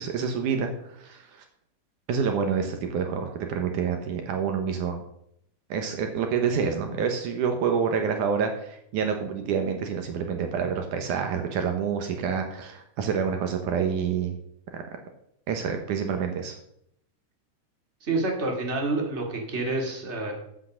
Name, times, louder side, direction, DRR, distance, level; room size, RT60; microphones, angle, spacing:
voice 1, 0.0-1.4 2.1-5.0 5.7-14.4 14.7-14.8 15.5-16.6, right 6 dB, 75° right, 5 dB, 2.5 m, -27 dB
voice 2, 18.0-20.3, right 2 dB, 20° right, 1 dB, 2.4 m, -28 dB
10.5 x 8.5 x 6.3 m, 0.74 s
omnidirectional pair, 3.8 m